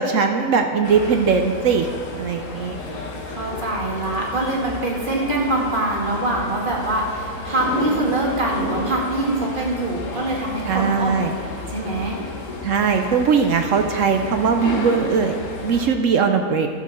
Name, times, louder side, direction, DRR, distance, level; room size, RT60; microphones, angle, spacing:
voice 1, 0.0-1.9 2.1-2.8 10.6-11.3 12.6-15.4 15.6-16.7, right 5 dB, 65° right, 5 dB, 0.9 m, -20 dB
sound 1, 0.8-15.9, left 2 dB, 60° left, 1.4 m, -32 dB
voice 2, 3.3-11.2 11.6-12.2, right 2 dB, 35° right, -2 dB, 1.8 m, -24 dB
12.0 x 5.2 x 6.8 m, 2.1 s
omnidirectional pair, 1.6 m